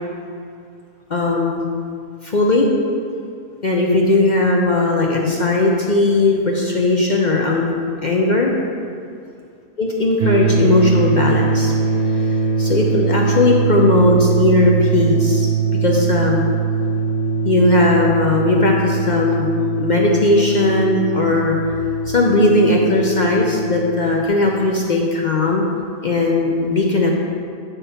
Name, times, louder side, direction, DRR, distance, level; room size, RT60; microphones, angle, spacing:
voice 1, 1.1-1.6 2.2-2.7 3.6-7.7 8.0-8.5 9.8-11.7 12.2-15.5 15.8-16.4 17.4-19.5 19.8-21.5 22.1-25.7 26.0-27.1, left 2 dB, 50° left, -1 dB, 0.5 m, -17 dB
sound 1, 10.2-24.3, right 4 dB, 90° right, 1.1 m, -21 dB
8.6 x 3.6 x 5.6 m, 2.4 s
omnidirectional pair, 1.5 m